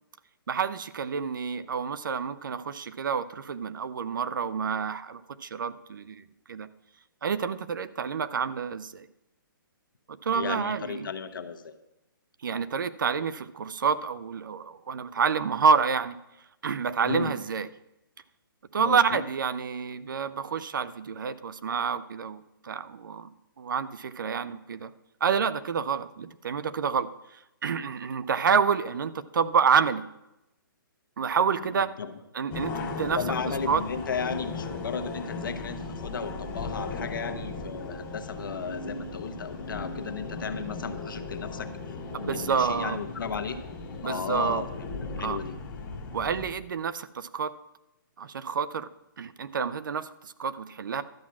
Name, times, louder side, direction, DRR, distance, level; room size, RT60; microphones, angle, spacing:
voice 1, 0.5-6.2 6.5-6.7 7.2-9.1 10.1-11.1 12.4-16.2 16.6-17.7 18.7-23.3 23.6-24.9 25.2-30.0 31.2-31.9 32.3-33.2 33.7-33.8 42.2-43.0 44.0-44.6 45.2-45.4 46.1-47.5 48.2-48.9 49.2-51.0, right 6 dB, 60° right, 15 dB, 0.6 m, -28 dB
voice 2, 10.3-11.7 17.0-17.3 18.8-19.2 31.6-32.1 33.1-43.6 44.0-45.5, left 5 dB, 65° left, 8 dB, 1.1 m, -35 dB
sound 1, 32.5-46.5, left 3 dB, 15° left, 0.9 m, -37 dB
12.0 x 5.9 x 7.3 m, 0.91 s
hypercardioid pair, 170°, 12 cm